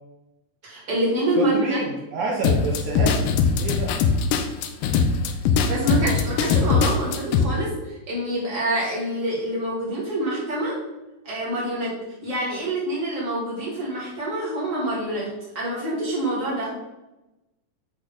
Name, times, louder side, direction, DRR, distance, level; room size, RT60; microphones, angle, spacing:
voice 1, 0.6-1.8 4.9-5.0 5.6-10.7 11.2-11.9 12.2-15.3 15.5-16.7, right 1 dB, 25° right, -5 dB, 2.9 m, -26 dB
voice 2, 1.4-3.2 3.6-4.0, right 3 dB, 70° right, -3 dB, 2.3 m, -27 dB
sound 1, 2.4-7.4, left 6 dB, 85° left, 2.3 m, -21 dB
8.6 x 4.1 x 5.0 m, 0.99 s
omnidirectional pair, 3.8 m